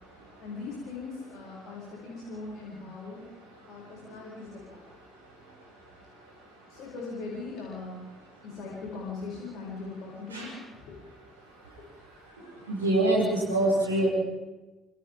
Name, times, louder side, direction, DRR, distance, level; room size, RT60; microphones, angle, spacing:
voice 1, 0.4-3.3 3.7-4.8 6.7-8.0 8.4-11.0 11.8-11.9, left 3 dB, 65° left, -4 dB, 7.9 m, -40 dB
voice 2, 12.7-14.1, right 1 dB, 90° right, -7 dB, 7.1 m, -24 dB
29.5 x 28.5 x 3.9 m, 1.1 s
hypercardioid pair, 50°, 0 cm